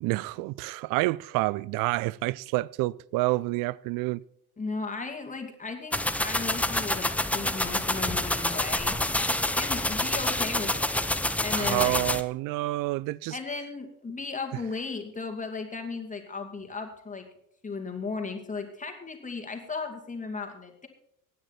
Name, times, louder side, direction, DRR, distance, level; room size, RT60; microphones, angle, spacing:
voice 1, 0.0-4.2 11.5-13.4, right 20 dB, 55° right, 0.5 m, -28 dB
voice 2, 4.6-8.9 9.5-11.0 11.4-12.0 13.3-17.3 17.6-20.9, left 4 dB, 20° left, 2.5 m, -35 dB
sound 1, 5.9-12.2, left 1 dB, 5° left, 0.7 m, -27 dB
16.5 x 9.4 x 4.3 m
hypercardioid pair, 85°, 40 cm